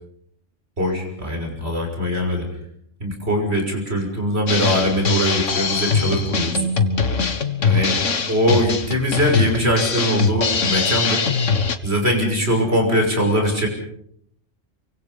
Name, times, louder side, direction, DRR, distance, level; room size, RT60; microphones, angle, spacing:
voice 1, 0.8-2.5 3.0-6.6 7.6-8.0 8.3-11.2 11.8-13.7, equal, 55° right, 3 dB, 6.5 m, -21 dB
Drum kit, 4.5-11.8, left 5 dB, 85° left, 1.9 m, -22 dB
28.0 x 24.5 x 5.6 m, 0.69 s
omnidirectional pair, 1.3 m